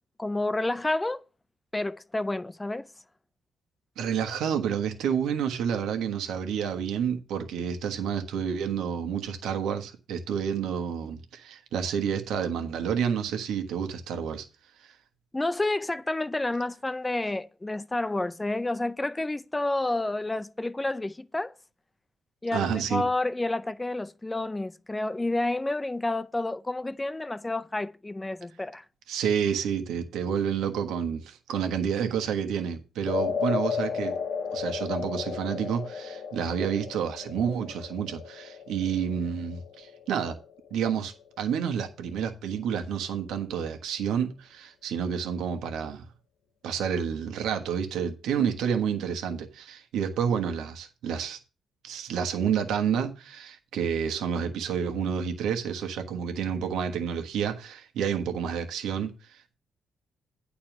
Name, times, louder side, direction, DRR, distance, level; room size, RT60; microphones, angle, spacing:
voice 1, 0.2-1.2 1.7-2.9 15.3-21.5 22.4-28.8, left 2 dB, 15° left, 0.5 m, -29 dB
voice 2, 4.0-14.4 14.8-14.9 22.5-23.0 29.1-34.2 34.5-40.4 40.7-46.1 46.6-51.4 51.8-59.6, right 7 dB, 85° right, 1.4 m, -29 dB
sound 1, 33.1-41.4, left 6 dB, 65° left, 1.4 m, -34 dB
9.3 x 4.3 x 7.3 m
cardioid pair, 95°, 0 cm